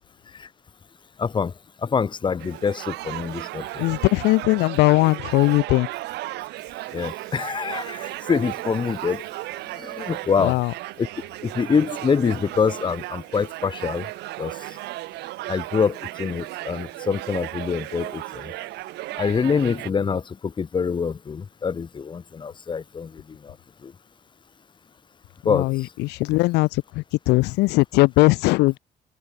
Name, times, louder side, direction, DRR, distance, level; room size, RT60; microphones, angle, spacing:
voice 1, 1.2-1.5 1.8-3.8 6.9-9.2 9.8-10.6 11.0-11.1 11.4-14.0 14.4-14.5 15.5-18.5 19.2-23.5 23.8-23.9 25.4-25.7, left 6 dB, 30° left, 1.1 m, -25 dB
sound 1, 2.4-19.9, right 18 dB, 85° right, 2.2 m, -35 dB
voice 2, 3.8-5.9 10.4-10.7 25.4-28.8, left 22 dB, 90° left, 0.7 m, -20 dB
cardioid pair, 110°, 17 cm